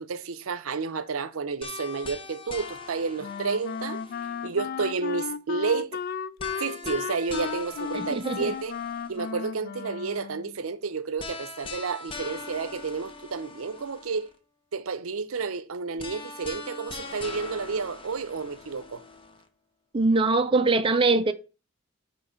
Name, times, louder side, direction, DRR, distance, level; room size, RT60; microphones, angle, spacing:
voice 1, 0.0-4.0 4.4-6.0 6.6-8.7 9.1-14.3 14.7-19.0, right 4 dB, 80° right, 0.6 m, -31 dB
sound 1, 1.6-4.7 6.4-9.4 11.2-14.4 16.0-19.4, left 3 dB, 25° left, 0.8 m, -41 dB
Wind instrument woodwind instrument, 3.2-10.6, left 7 dB, 45° left, 0.3 m, -35 dB
voice 2, 7.9-8.5 19.9-21.3, right 3 dB, 25° right, 0.4 m, -22 dB
8.3 x 3.1 x 5.6 m
head